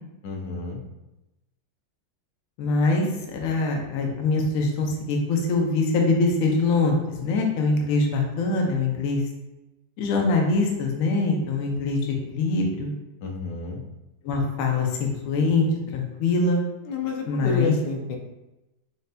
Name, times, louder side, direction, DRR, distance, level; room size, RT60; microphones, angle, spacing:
voice 1, 0.2-0.8 13.2-13.8 16.9-18.2, left 3 dB, 80° left, 2 dB, 1.3 m, -29 dB
voice 2, 2.6-9.2 10.0-12.9 14.2-15.7 15.9-16.6 17.3-17.7, left 3 dB, 60° left, 1 dB, 1.0 m, -23 dB
6.4 x 2.7 x 2.2 m, 0.98 s
omnidirectional pair, 1.9 m